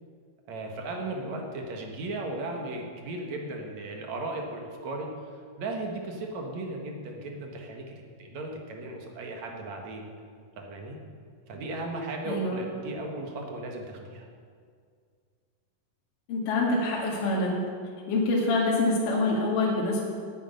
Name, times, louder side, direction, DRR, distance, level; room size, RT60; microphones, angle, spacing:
voice 1, 0.5-7.9 8.2-10.1 10.6-11.0 11.5-14.3, right 2 dB, 60° right, 1 dB, 2.6 m, -36 dB
voice 2, 12.3-12.6 16.3-17.6 18.1-20.0, left 2 dB, 65° left, -4 dB, 3.5 m, -26 dB
10.5 x 10.0 x 9.3 m, 2.1 s
omnidirectional pair, 4.1 m